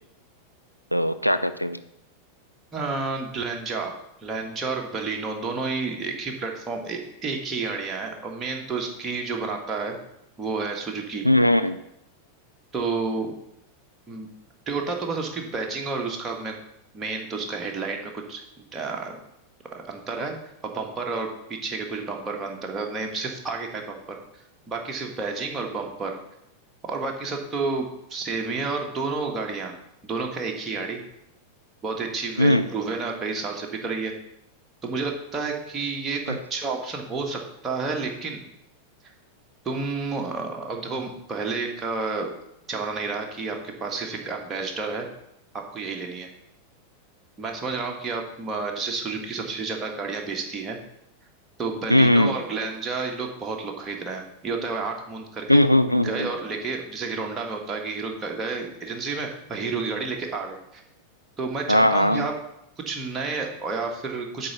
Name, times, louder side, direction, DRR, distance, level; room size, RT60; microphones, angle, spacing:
voice 1, 0.9-1.8 11.2-11.8 32.4-32.7 36.3-36.4 51.9-52.3 55.5-56.3 61.7-62.3, left 1 dB, 90° left, 9 dB, 0.4 m, -19 dB
voice 2, 2.7-3.9 4.2-10.0 10.4-11.2 12.7-13.3 14.1-14.3 14.7-16.5 16.9-19.2 19.7-21.3 21.6-24.0 24.7-26.2 26.9-29.7 30.0-31.0 31.8-34.1 34.8-38.4 39.6-42.3 42.7-45.1 45.7-46.3 47.4-50.8 51.6-55.6 55.9-60.8 61.4-62.3 62.8-64.5, right 4 dB, 20° right, 1 dB, 1.5 m, -30 dB
8.6 x 3.9 x 6.9 m, 0.79 s
figure-of-eight pair, 90°, 0 cm